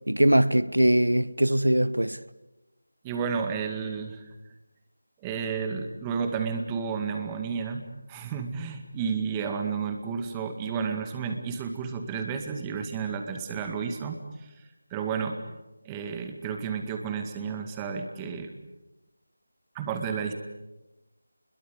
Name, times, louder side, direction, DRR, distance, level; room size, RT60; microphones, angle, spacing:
voice 1, 0.1-2.2, right 1 dB, 90° right, 1.0 m, -21 dB
voice 2, 3.0-4.3 5.2-14.5 14.9-15.4 15.8-18.5 19.7-20.3, right 6 dB, 15° right, 2.0 m, -32 dB
29.0 x 22.0 x 8.1 m
figure-of-eight pair, 165°, 0 cm